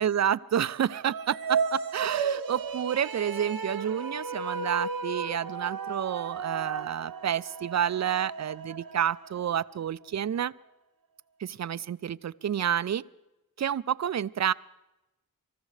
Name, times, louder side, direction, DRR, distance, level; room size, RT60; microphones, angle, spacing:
voice 1, 0.0-10.5 11.4-13.0 13.6-14.5, right 9 dB, 50° right, 18 dB, 0.5 m, -29 dB
sound 1, 1.0-9.5, right 5 dB, 75° right, 0.8 m, -34 dB
26.0 x 14.0 x 3.3 m, 0.98 s
cardioid pair, 45°, 35 cm